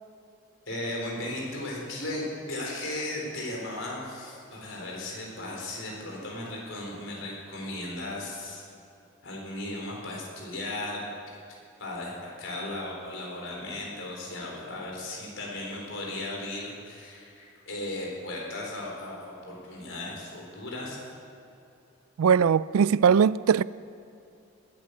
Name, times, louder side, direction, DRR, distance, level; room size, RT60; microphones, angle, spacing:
voice 1, 0.7-8.6 9.2-11.0 11.5-21.0, left 1 dB, 65° left, 4.4 m, -36 dB
voice 2, 22.2-23.6, right 7 dB, 90° right, 0.3 m, -20 dB
20.0 x 9.1 x 6.6 m
head